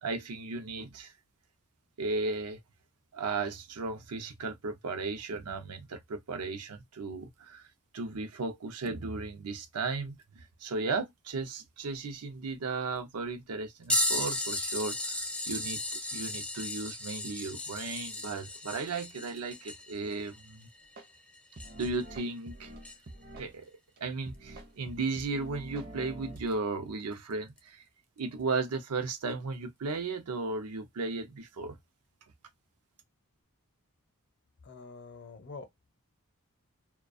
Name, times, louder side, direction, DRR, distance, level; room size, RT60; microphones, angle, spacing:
voice 1, 0.0-1.1 2.0-2.6 3.1-7.7 7.9-15.2 15.5-20.7 21.7-22.7 23.4-27.8 28.2-31.8, right 3 dB, 85° right, 0.6 m, -35 dB
sound 1, 13.9-22.1 22.8-22.9 25.2-25.3 26.4-26.5 27.6-27.7, left 1 dB, 5° left, 0.4 m, -35 dB
sound 2, 21.0-21.1 21.6-23.5 24.0-24.1 24.3-26.6, right 1 dB, 45° right, 0.6 m, -46 dB
voice 2, 34.6-35.9, left 4 dB, 50° left, 0.6 m, -46 dB
2.3 x 2.2 x 2.4 m
head